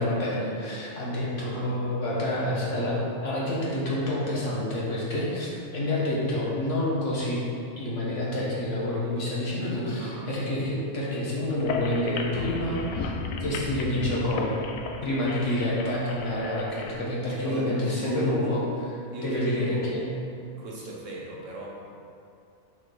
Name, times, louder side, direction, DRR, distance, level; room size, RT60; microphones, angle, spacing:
voice 1, 0.0-7.4 7.8-13.1 13.4-14.5 15.0-18.6 19.2-20.1, left 1 dB, 65° left, -6 dB, 1.6 m, -28 dB
voice 2, 1.3-1.8 6.0-6.2 10.0-10.3 17.4-18.6 19.1-19.9 20.6-21.7, right 2 dB, 65° right, -3 dB, 1.4 m, -39 dB
sound 1, 11.5-16.9, left 4 dB, 80° left, 1.0 m, -34 dB
6.1 x 4.3 x 4.6 m, 2.5 s
omnidirectional pair, 1.4 m